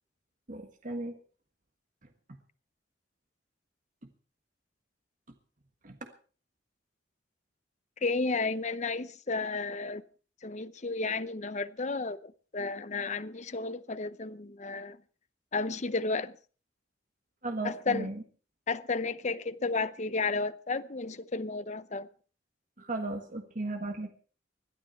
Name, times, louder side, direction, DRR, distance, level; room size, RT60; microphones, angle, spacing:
voice 1, 0.5-1.1 5.8-6.1 17.4-18.2 22.8-24.1, right 2 dB, 40° right, 1.5 m, -36 dB
voice 2, 8.0-10.0 10.4-15.0 15.5-16.3 17.6-18.1 18.7-22.1, left 3 dB, 35° left, 0.7 m, -32 dB
21.0 x 12.5 x 4.5 m
head